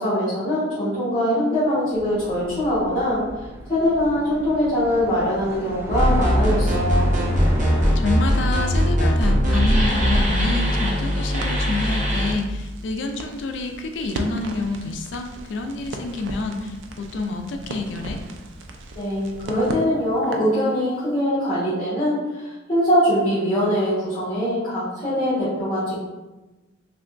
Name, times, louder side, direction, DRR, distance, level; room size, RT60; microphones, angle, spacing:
voice 1, 0.0-3.2 3.7-7.1 19.0-26.0, equal, 25° left, -13 dB, 1.1 m, -22 dB
sound 1, 1.9-8.0, equal, 15° right, 0.4 m, -35 dB
sound 2, 5.9-12.3, equal, 40° right, 0.7 m, -20 dB
voice 2, 8.0-18.2, left 3 dB, 65° left, 5 dB, 0.3 m, -28 dB
Crackle, 11.4-20.6, right 2 dB, 75° right, 0.4 m, -36 dB
3.3 x 2.9 x 2.5 m, 1.1 s
head